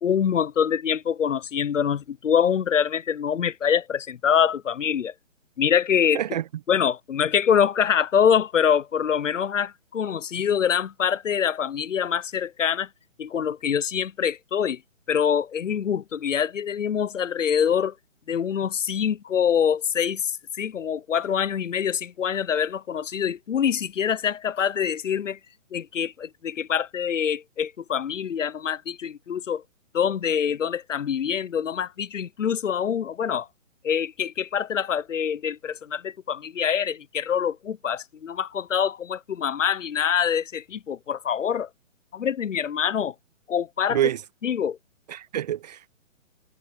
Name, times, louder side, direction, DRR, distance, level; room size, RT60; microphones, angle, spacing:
voice 1, 0.0-5.1 5.6-6.2 6.7-12.9 13.2-14.8 15.1-17.9 18.3-25.4 25.7-29.6 29.9-33.5 33.8-41.7 42.1-43.1 43.5-44.0 44.4-44.8, left 8 dB, 70° left, 1.0 m, -25 dB
voice 2, 43.9-44.2 45.1-45.9, right 11 dB, 30° right, 0.9 m, -26 dB
hypercardioid pair, 145°, 40 cm